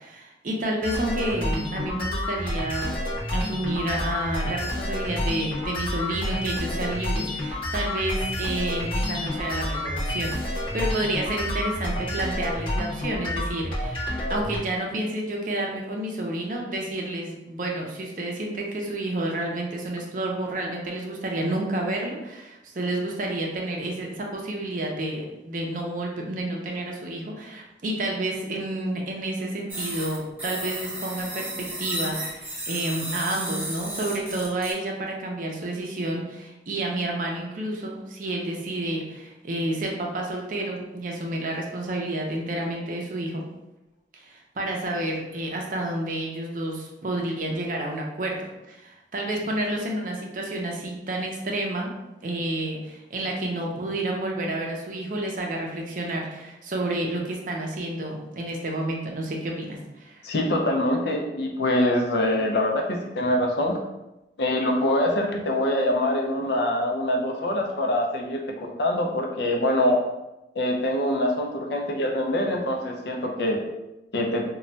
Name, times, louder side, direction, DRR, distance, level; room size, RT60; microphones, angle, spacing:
voice 1, 0.0-2.9 3.3-43.5 44.1-51.9 52.2-60.2, right 1 dB, 50° right, 0 dB, 0.5 m, -30 dB
sound 1, 0.8-14.6, left 1 dB, 30° left, 0.7 m, -29 dB
sound 2, 29.7-34.7, right 1 dB, 10° right, 0.7 m, -33 dB
voice 2, 60.2-63.8 64.4-70.0 70.6-73.6 74.1-74.4, left 1 dB, 70° left, 2 dB, 0.4 m, -24 dB
2.2 x 2.1 x 3.8 m, 0.97 s
head